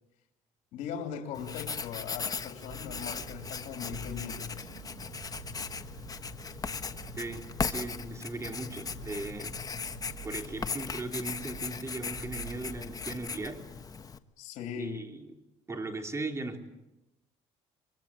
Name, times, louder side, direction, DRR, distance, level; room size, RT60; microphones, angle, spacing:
voice 1, 0.7-4.8 14.4-15.0, left 7 dB, 80° left, 3 dB, 2.9 m, -39 dB
Writing, 1.3-14.2, left 5 dB, 30° left, 1.4 m, -38 dB
sound 1, 2.7-13.4, right 5 dB, 80° right, 6.8 m, -48 dB
voice 2, 7.2-9.6 10.2-13.6 14.8-15.4 15.7-16.7, right 2 dB, 20° right, 5 dB, 3.4 m, -38 dB
24.0 x 23.0 x 8.8 m, 0.93 s
cardioid pair, 100°, 13 cm